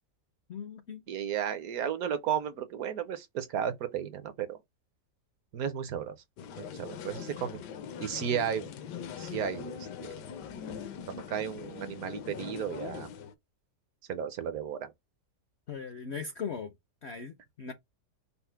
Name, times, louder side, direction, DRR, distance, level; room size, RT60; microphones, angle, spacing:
voice 1, 0.5-1.0 15.7-16.7 17.0-17.7, left 6 dB, 65° left, 0.6 m, -39 dB
voice 2, 1.1-4.6 5.5-6.1 6.6-7.6 8.0-8.7 9.2-10.2 11.1-13.1 14.1-14.9, right 8 dB, 65° right, 1.0 m, -34 dB
sound 1, 6.4-13.3, left 7 dB, 80° left, 1.3 m, -41 dB
5.6 x 2.1 x 4.4 m
omnidirectional pair, 1.8 m